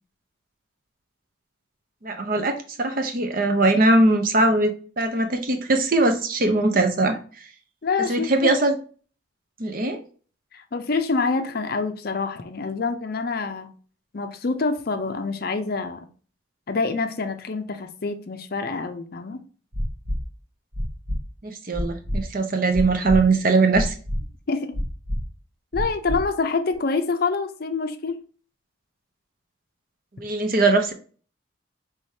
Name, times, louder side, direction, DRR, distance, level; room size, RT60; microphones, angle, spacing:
voice 1, 2.0-7.2 8.1-8.7 9.6-10.0 21.4-23.9 30.2-30.9, right 2 dB, 45° right, 0.7 m, -21 dB
voice 2, 7.8-8.5 10.5-13.7 14.1-16.0 16.7-19.4 24.5-24.7 25.7-28.2, left 4 dB, 50° left, 0.5 m, -26 dB
sound 1, 19.7-20.2 20.7-21.2 21.7-22.2 22.7-23.2 23.7-24.2 24.7-25.2 25.7-26.2 26.7-26.8, equal, 75° right, 1.4 m, -26 dB
4.8 x 3.4 x 2.8 m
head